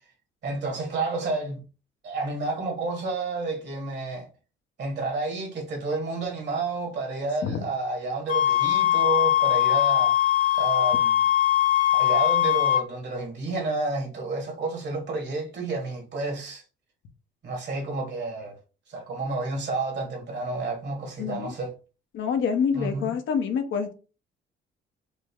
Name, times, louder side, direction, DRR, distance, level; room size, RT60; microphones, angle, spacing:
voice 1, 0.4-1.6 2.0-4.3 4.8-10.1 10.6-11.2 11.9-16.6 17.4-18.6 18.9-21.7 22.7-23.1, right 3 dB, 60° right, 1.7 m, -30 dB
sound 1, 8.3-12.8, left 12 dB, 45° left, 1.0 m, -21 dB
voice 2, 21.2-21.5 22.1-23.9, left 6 dB, 75° left, 0.9 m, -27 dB
5.0 x 2.1 x 3.6 m
cardioid pair, 90°, 20 cm